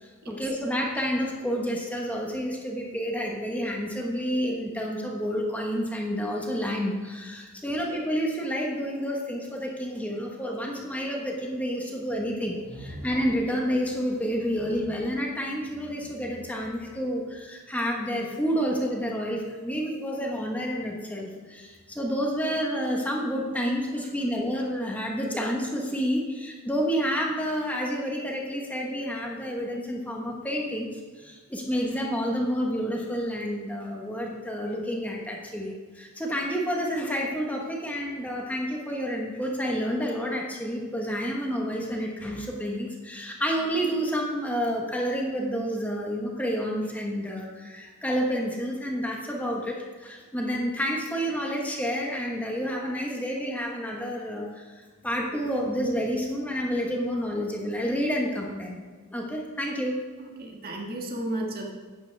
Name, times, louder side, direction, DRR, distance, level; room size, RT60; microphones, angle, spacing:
voice 1, 0.0-58.8 59.1-60.0, equal, 5° left, -1 dB, 1.2 m, -29 dB
sound 1, 12.1-17.4, equal, 90° right, 2.6 m, -47 dB
voice 2, 60.2-61.7, right 1 dB, 45° right, 0 dB, 1.7 m, -33 dB
11.5 x 9.0 x 3.4 m, 1.4 s
head